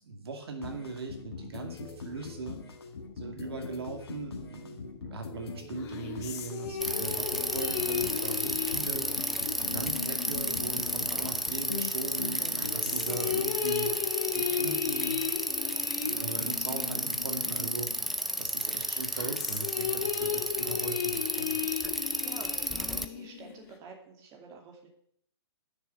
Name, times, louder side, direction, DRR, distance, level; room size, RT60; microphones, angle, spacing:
voice 1, 0.0-2.6 3.2-9.1 9.6-14.1 14.3-15.2 16.0-21.6, right 4 dB, 60° right, 4 dB, 2.3 m, -39 dB
sound 1, 0.6-13.5, left 5 dB, 60° left, 2.0 m, -42 dB
sound 2, 5.7-11.7 12.2-18.2 18.7-23.8, left 9 dB, 35° left, 1.6 m, -36 dB
Bicycle, 6.8-23.0, right 1 dB, ahead, 0.5 m, -32 dB
voice 2, 21.9-24.9, right 4 dB, 20° right, 2 dB, 2.5 m, -49 dB
9.5 x 6.8 x 7.8 m, 0.66 s
figure-of-eight pair, 130°, 15 cm